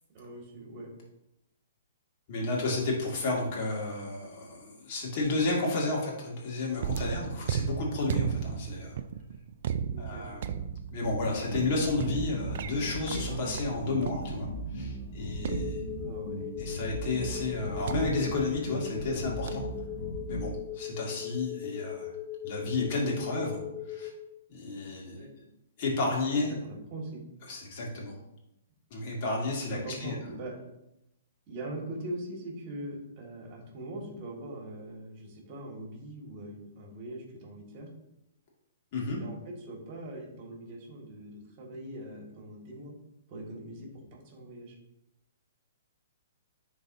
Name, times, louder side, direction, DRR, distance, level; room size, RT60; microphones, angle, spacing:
voice 1, 0.1-0.9 9.9-10.3 16.0-16.5 25.1-25.3 26.3-27.2 29.7-30.6 31.5-37.9 39.0-42.9 43.3-44.8, right 1 dB, 40° right, 0 dB, 2.1 m, -42 dB
voice 2, 2.3-9.0 10.0-10.6 10.9-14.5 14.7-15.8 16.6-19.6 20.3-22.1 22.4-23.6 23.9-24.1 24.5-25.3 25.8-26.5 27.5-28.1 28.9-30.2 38.9-39.2, left 3 dB, 50° left, -3 dB, 2.3 m, -32 dB
sound 1, 6.8-14.7 15.4-16.4 17.9-19.1 19.5-19.8, right 8 dB, 60° right, 0.4 m, -35 dB
sound 2, 11.0-20.5, equal, 80° left, 1.7 m, -38 dB
sound 3, 15.5-24.1, left 12 dB, 25° left, 0.6 m, -39 dB
10.5 x 3.9 x 2.8 m, 0.85 s
hypercardioid pair, 135°, 0 cm